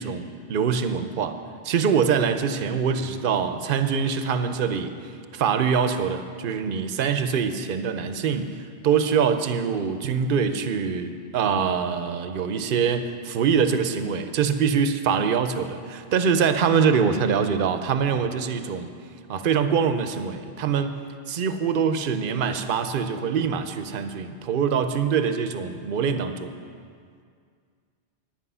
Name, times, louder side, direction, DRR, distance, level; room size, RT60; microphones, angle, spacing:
voice 1, 0.0-1.4 1.6-8.6 8.8-18.9 19.3-21.0 21.3-26.5, right 6 dB, 60° right, 9 dB, 0.8 m, -24 dB
10.5 x 10.0 x 5.5 m, 2.2 s
omnidirectional pair, 1.1 m